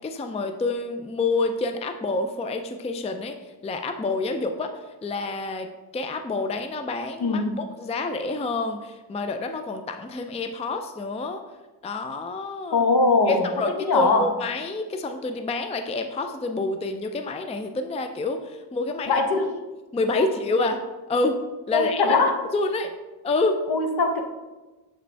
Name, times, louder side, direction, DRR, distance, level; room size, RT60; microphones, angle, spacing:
voice 1, 0.0-5.7 5.9-11.4 11.8-12.8 13.3-19.2 19.9-21.4 21.7-22.2 22.5-22.9 23.2-23.6, left 3 dB, 15° left, 7 dB, 0.4 m, -28 dB
voice 2, 7.2-7.6 12.7-13.5 13.8-14.3 19.1-19.5 20.2-20.3 21.7-22.4 23.7-24.2, left 3 dB, 55° left, 5 dB, 1.0 m, -21 dB
7.3 x 5.0 x 3.4 m, 1.2 s
cardioid pair, 70°, 44 cm